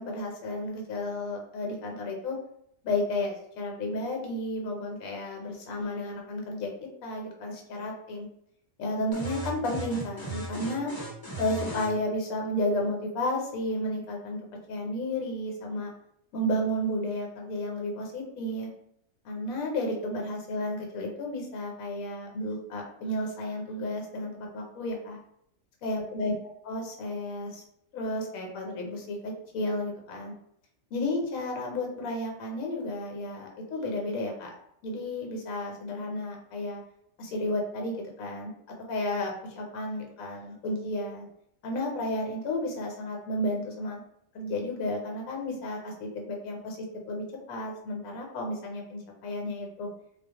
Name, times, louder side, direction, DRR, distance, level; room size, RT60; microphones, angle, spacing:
voice 1, 0.0-2.4 2.8-6.7 7.0-8.3 8.8-10.9 11.4-14.4 14.7-15.9 16.3-18.7 19.2-25.2 25.8-26.3 26.6-27.6 27.9-30.3 30.9-34.5 34.8-36.8 37.2-38.5 38.9-41.3 41.6-44.0 44.3-49.9, left 1 dB, 75° left, 1 dB, 1.1 m, -32 dB
sound 1, 9.1-11.9, right 2 dB, 25° left, 0.5 m, -36 dB
2.4 x 2.0 x 2.7 m, 0.72 s
omnidirectional pair, 1.5 m